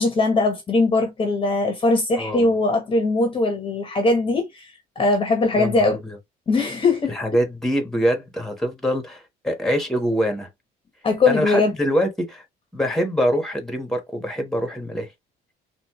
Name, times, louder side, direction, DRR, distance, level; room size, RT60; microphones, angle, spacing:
voice 1, 0.0-4.7 5.0-6.0 6.5-7.1 11.0-11.7, left 3 dB, 30° left, 1.1 m, -20 dB
voice 2, 2.2-2.5 5.5-6.2 7.1-10.5 11.3-12.4 12.7-15.1, equal, 5° left, 1.4 m, -24 dB
4.1 x 2.6 x 3.1 m
cardioid pair, 110°, 17 cm